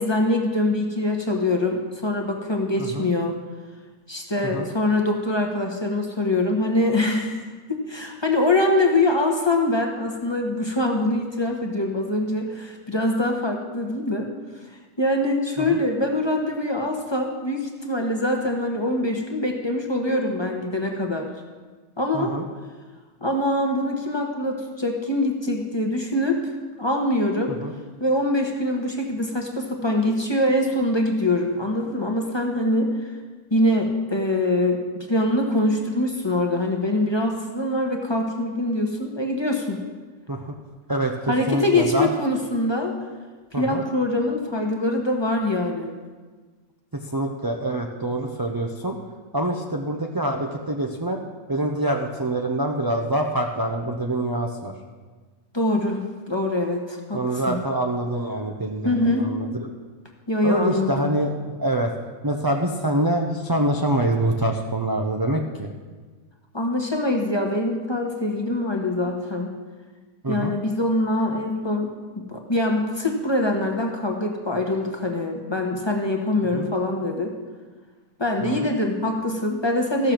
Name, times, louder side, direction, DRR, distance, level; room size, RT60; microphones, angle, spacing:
voice 1, 0.0-3.4 4.1-7.4 7.7-14.3 15.0-21.3 22.0-22.4 23.2-26.5 26.8-27.6 28.0-32.9 33.5-39.8 41.3-43.0 43.6-45.9 55.5-57.6 58.8-59.2 60.3-61.1 66.5-69.5 70.3-77.3 78.2-80.1, left 1 dB, 20° left, 1 dB, 1.1 m, -24 dB
voice 2, 22.1-22.5 27.6-27.7 40.3-40.5 40.9-42.1 43.5-43.8 46.9-49.0 49.3-51.2 51.5-54.7 57.1-59.7 60.4-61.9 62.2-65.7 70.2-70.5 76.5-76.7 78.4-78.7, right 1 dB, 30° right, 1 dB, 0.4 m, -25 dB
14.5 x 6.8 x 6.0 m, 1.4 s
omnidirectional pair, 1.7 m